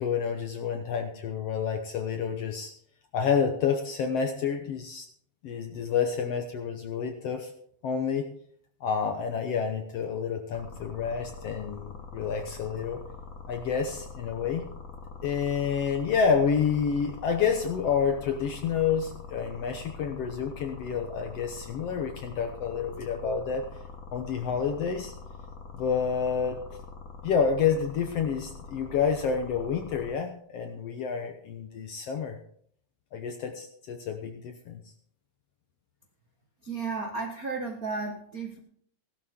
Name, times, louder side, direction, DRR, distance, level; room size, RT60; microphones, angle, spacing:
voice 1, 0.0-2.7 3.1-5.1 5.4-7.5 7.8-8.3 8.8-13.0 13.5-14.6 15.2-23.6 24.1-25.1 25.7-26.6 27.2-32.4 33.1-34.8, left 6 dB, 70° left, 5 dB, 1.5 m, -29 dB
sound 1, 10.5-30.1, left 4 dB, 40° left, 1.3 m, -44 dB
voice 2, 36.6-38.6, right 4 dB, 70° right, 3 dB, 0.8 m, -33 dB
16.0 x 12.5 x 3.6 m, 0.63 s
omnidirectional pair, 3.9 m